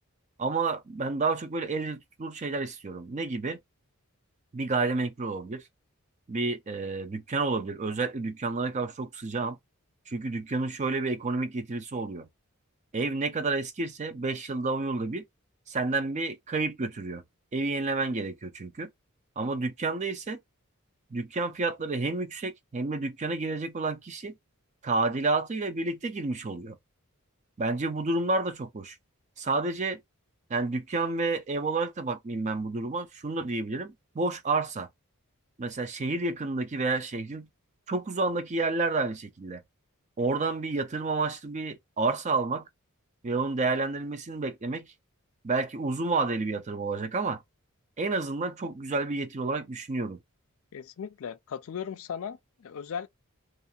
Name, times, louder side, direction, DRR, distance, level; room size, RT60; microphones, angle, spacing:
voice 1, 0.4-3.6 4.5-5.6 6.3-9.6 10.1-12.3 12.9-15.2 15.7-17.2 17.5-18.9 19.4-20.4 21.1-24.3 24.8-26.8 27.6-29.0 29.4-30.0 30.5-34.9 35.6-37.5 37.9-39.6 40.2-42.7 43.2-44.9 45.4-47.4 48.0-50.2, right 3 dB, 30° right, 0.4 m, -30 dB
voice 2, 50.7-53.1, left 7 dB, 65° left, 0.4 m, -37 dB
2.5 x 2.4 x 2.7 m
head